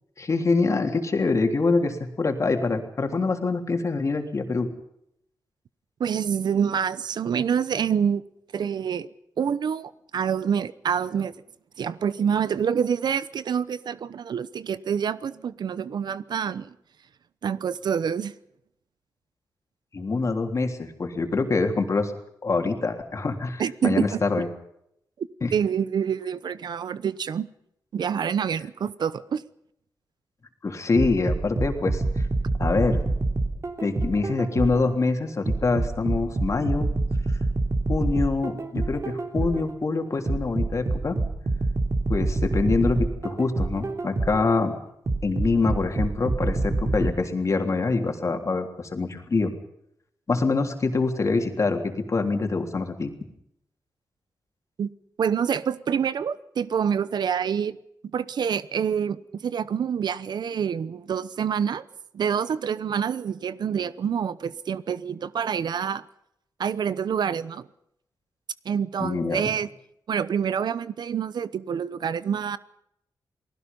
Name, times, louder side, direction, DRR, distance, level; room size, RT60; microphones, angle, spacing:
voice 1, 0.2-4.7 19.9-22.1 22.4-24.5 25.4-25.5 30.6-32.3 32.6-33.0 33.8-36.9 37.9-41.2 42.1-44.7 45.2-49.5 50.3-53.1 69.0-69.6, left 3 dB, 45° left, 3.5 m, -25 dB
voice 2, 6.0-8.2 8.5-9.1 9.4-11.3 11.8-16.7 17.4-18.3 23.6-24.2 25.2-27.5 27.9-29.4 54.8-54.9 55.2-57.8 58.1-61.8 62.1-66.0 66.6-67.7 68.6-69.7 70.1-72.6, right 7 dB, 70° right, 0.9 m, -27 dB
sound 1, 31.0-34.9 35.5-39.7 40.3-44.5 45.1-47.1, right 2 dB, 40° right, 3.3 m, -26 dB
29.0 x 19.5 x 5.5 m
cardioid pair, 90°, 7 cm